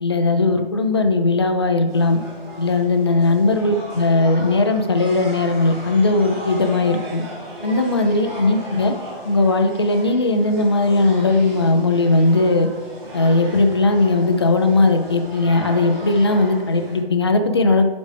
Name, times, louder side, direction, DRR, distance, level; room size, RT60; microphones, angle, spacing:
voice 1, 0.0-2.2 2.6-7.2 7.6-8.9 9.2-12.7 13.1-17.9, left 2 dB, 25° left, 5 dB, 0.4 m, -18 dB
sound 1, 1.9-17.0, right 1 dB, 20° right, 2.2 m, -36 dB
12.0 x 5.2 x 3.3 m, 1.3 s
hypercardioid pair, 165°, 31 cm